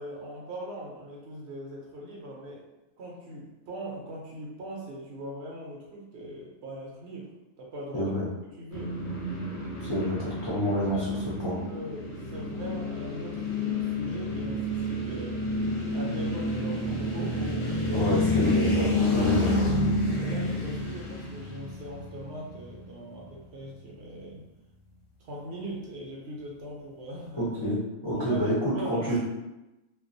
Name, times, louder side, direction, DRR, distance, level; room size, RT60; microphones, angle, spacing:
voice 1, 0.0-2.6 3.0-7.3 7.6-8.1 8.5-9.0 10.9-15.4 15.9-18.1 19.4-19.7 20.2-24.5 25.2-27.5 28.1-29.2, right 1 dB, 65° right, -3 dB, 0.8 m, -40 dB
voice 2, 7.9-8.2 9.8-11.1 11.4-11.5 17.9-19.5 27.4-29.2, equal, 35° left, -9 dB, 0.4 m, -28 dB
sound 1, 8.7-22.9, left 1 dB, 65° left, 0.8 m, -29 dB
2.3 x 2.2 x 2.5 m, 0.99 s
omnidirectional pair, 1.3 m